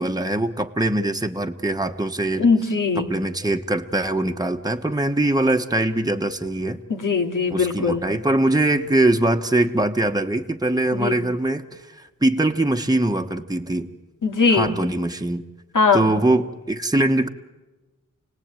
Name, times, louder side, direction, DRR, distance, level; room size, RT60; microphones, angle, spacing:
voice 1, 0.0-2.4 3.0-6.8 7.5-13.9 14.5-15.4 15.9-17.3, right 1 dB, 10° right, 4 dB, 1.3 m, -22 dB
voice 2, 2.4-3.0 6.9-8.0 10.9-11.1 14.2-14.7 15.7-16.1, left 4 dB, 80° left, 3 dB, 2.6 m, -20 dB
29.0 x 19.0 x 9.1 m, 1.1 s
wide cardioid pair, 75°, 31 cm